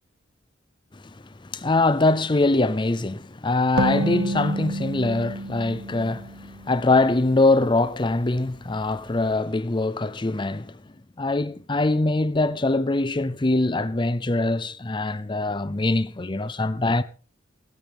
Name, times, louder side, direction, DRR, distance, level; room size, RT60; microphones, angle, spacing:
voice 1, 1.4-10.8 11.2-17.0, left 2 dB, 25° left, 0.6 m, -23 dB
sound 1, 3.8-7.3, right 1 dB, 90° right, 1.6 m, -29 dB
17.0 x 15.0 x 3.5 m
head